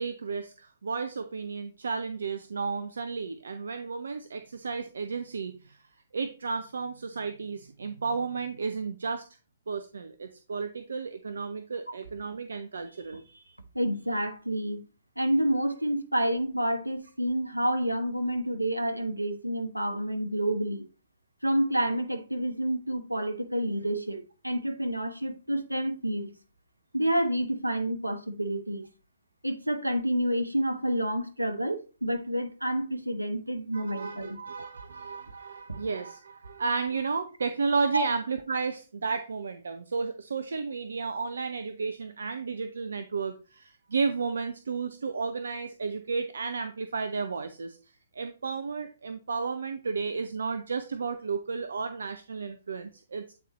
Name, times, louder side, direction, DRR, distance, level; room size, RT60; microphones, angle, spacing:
voice 1, 0.0-5.8 6.1-9.2 9.7-13.5 33.7-47.8 48.1-53.3, right 4 dB, 60° right, 0.5 m, -33 dB
voice 2, 13.7-14.8 15.2-20.8 21.4-26.3 26.9-28.8 29.4-34.4 37.9-38.0, right 1 dB, 85° right, 1.0 m, -29 dB
8.2 x 4.2 x 3.0 m
figure-of-eight pair, 125°, 0 cm